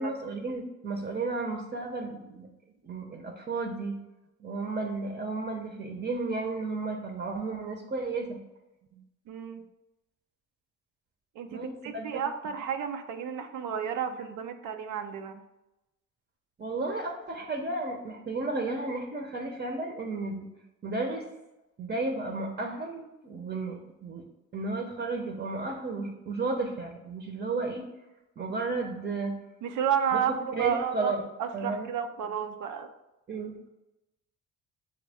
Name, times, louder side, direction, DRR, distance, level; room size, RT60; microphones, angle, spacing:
voice 1, 0.0-2.5 2.8-4.0 4.4-8.4 11.5-12.2 16.6-20.5 20.8-21.2 21.8-24.2 24.5-27.8 28.4-29.4 30.5-31.2 31.5-31.9 33.3-33.7, right 3 dB, 30° right, 2 dB, 0.7 m, -33 dB
voice 2, 8.9-9.6 11.4-15.4 29.6-31.1 31.4-32.9, right 8 dB, 80° right, 7 dB, 0.5 m, -32 dB
6.3 x 2.2 x 3.4 m, 0.95 s
cardioid pair, 90°, 30 cm